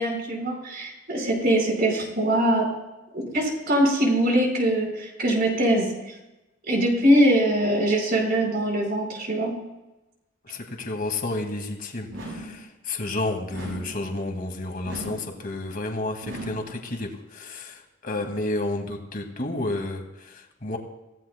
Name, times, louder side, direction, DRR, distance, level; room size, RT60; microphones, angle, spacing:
voice 1, 0.0-2.7 3.1-6.2 6.7-9.6, right 1 dB, 50° right, 0 dB, 4.7 m, -22 dB
voice 2, 10.4-20.8, left 2 dB, 45° left, 3 dB, 2.1 m, -31 dB
sound 1, 12.1-12.7 13.5-14.0 14.8-15.4 16.2-16.8, right 1 dB, 75° right, 6.1 m, -37 dB
25.0 x 16.5 x 2.2 m, 1.0 s
head